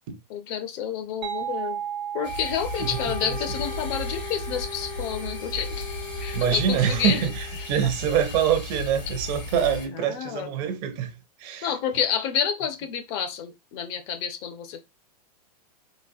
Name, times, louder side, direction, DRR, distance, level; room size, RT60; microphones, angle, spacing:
voice 1, 0.3-1.8 2.1-5.9 6.2-7.2 7.8-7.9 9.9-10.5 11.6-14.8, left 8 dB, 40° left, 0.6 m, -29 dB
sound 1, 1.2-6.7, right 9 dB, 85° right, 1.0 m, -37 dB
sound 2, 2.2-9.9, left 2 dB, 80° left, 1.9 m, -35 dB
Wind instrument woodwind instrument, 2.7-7.8, left 2 dB, 60° left, 1.0 m, -39 dB
voice 2, 6.3-11.1 11.4-11.7, right 9 dB, 40° right, 0.6 m, -25 dB
3.9 x 2.2 x 2.5 m
supercardioid pair, 150°, 21 cm